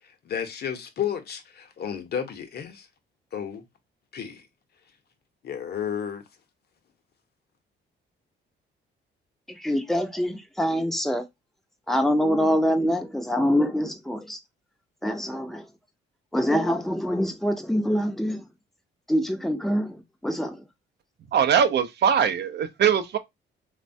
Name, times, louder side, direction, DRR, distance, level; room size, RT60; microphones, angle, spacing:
voice 1, 0.3-2.9 3.3-3.6 4.1-4.4 5.4-6.2, left 8 dB, 55° left, 0.7 m, -32 dB
voice 2, 9.5-11.2 11.9-14.4 15.0-15.7 16.3-18.4 19.1-20.6, equal, ahead, 0.5 m, -25 dB
voice 3, 21.3-23.2, right 8 dB, 60° right, 0.5 m, -21 dB
3.1 x 2.2 x 2.5 m
cardioid pair, 90°, 20 cm